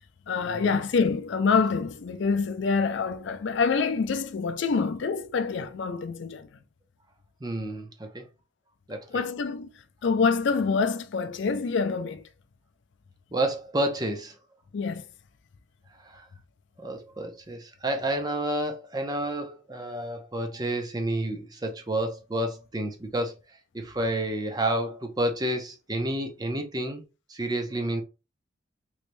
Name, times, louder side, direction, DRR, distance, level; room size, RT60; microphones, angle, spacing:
voice 1, 0.3-6.5 9.1-9.7 10.0-12.2 14.7-15.1, left 5 dB, 65° left, 0.4 m, -26 dB
voice 2, 7.4-8.2 8.9-9.2 13.3-14.3 16.1-16.3 16.8-23.3 23.7-27.0 27.3-28.0, right 1 dB, 20° right, 0.5 m, -30 dB
3.1 x 3.1 x 2.6 m
head